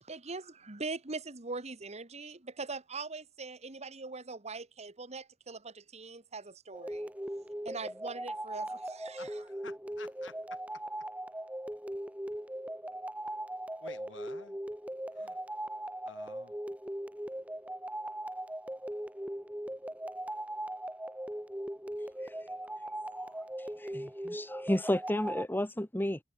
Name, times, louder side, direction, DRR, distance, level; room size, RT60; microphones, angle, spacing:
voice 1, 0.0-7.1 7.7-9.2, right 3 dB, 35° right, 1.7 m, -42 dB
sound 1, 6.7-25.4, right 1 dB, 10° right, 3.4 m, -39 dB
voice 2, 9.2-11.1 13.8-14.6 15.1-15.4 16.0-16.6, left 4 dB, 75° left, 7.8 m, -52 dB
voice 3, 23.8-26.2, left 1 dB, 10° left, 1.3 m, -32 dB
head